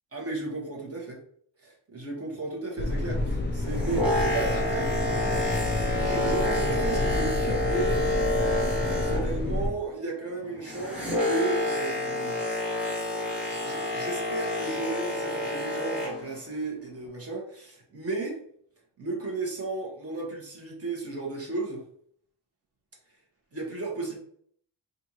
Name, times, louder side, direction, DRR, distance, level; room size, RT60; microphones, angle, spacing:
voice 1, 0.1-1.2 1.6-5.2 6.0-8.0 8.9-12.4 13.3-18.4 19.0-21.9 23.5-24.2, right 3 dB, 30° right, -2 dB, 1.2 m, -34 dB
sound 1, 2.8-9.7, left 2 dB, 25° left, 0.6 m, -29 dB
Boat Water vehicle, 3.5-9.6 9.9-16.3 17.0-17.1, left 1 dB, ahead, 1.4 m, -29 dB
4.3 x 2.6 x 2.9 m, 0.63 s
wide cardioid pair, 140°, 47 cm